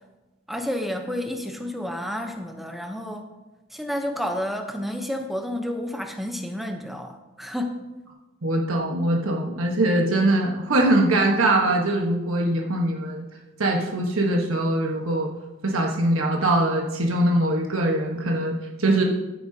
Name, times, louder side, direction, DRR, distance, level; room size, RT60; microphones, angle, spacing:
voice 1, 0.5-3.3 3.7-7.8, left 1 dB, ahead, 4 dB, 0.7 m, -30 dB
voice 2, 8.4-13.3 13.6-15.3 15.6-19.0, right 1 dB, 80° right, 0 dB, 1.2 m, -22 dB
15.0 x 7.9 x 2.8 m, 1.1 s
head